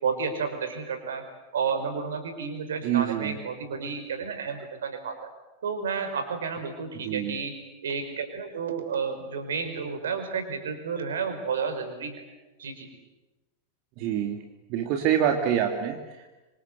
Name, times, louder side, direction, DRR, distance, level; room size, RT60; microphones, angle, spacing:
voice 1, 0.0-1.2 1.5-5.2 5.6-7.5 7.8-12.2 12.6-12.9, right 5 dB, 65° right, 7 dB, 5.3 m, -31 dB
voice 2, 2.8-3.4 7.0-7.4 14.0-14.4 14.7-16.3, right 9 dB, 45° right, 4 dB, 2.5 m, -26 dB
26.5 x 26.0 x 8.2 m, 1.1 s
figure-of-eight pair, 90°, 0 cm